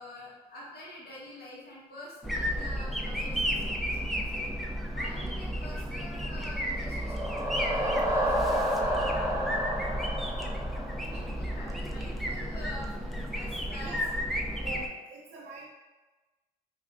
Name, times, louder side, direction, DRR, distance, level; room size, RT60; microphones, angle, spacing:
voice 1, 0.0-4.6 4.9-7.2 7.5-9.9 11.0-13.9, left 1 dB, 65° left, -5 dB, 1.3 m, -46 dB
sound 1, 2.2-14.9, equal, ahead, 0.5 m, -33 dB
sound 2, 6.6-11.5, equal, 15° right, 1.0 m, -30 dB
voice 2, 14.6-15.6, right 3 dB, 85° right, -3 dB, 0.8 m, -44 dB
4.3 x 2.4 x 2.5 m, 1.2 s
supercardioid pair, 50°, 18 cm